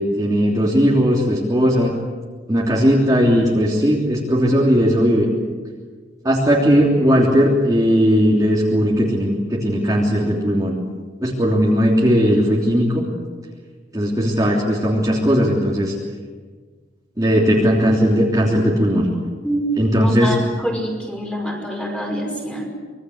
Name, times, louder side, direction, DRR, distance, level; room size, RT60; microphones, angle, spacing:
voice 1, 0.0-1.9 2.5-5.3 6.2-10.7 11.2-13.1 13.9-15.9 17.2-19.1 19.8-20.3, equal, 20° right, -3 dB, 3.2 m, -17 dB
voice 2, 19.4-19.8 20.0-22.8, right 1 dB, 5° left, 1 dB, 5.6 m, -26 dB
26.0 x 22.5 x 8.0 m, 1.5 s
head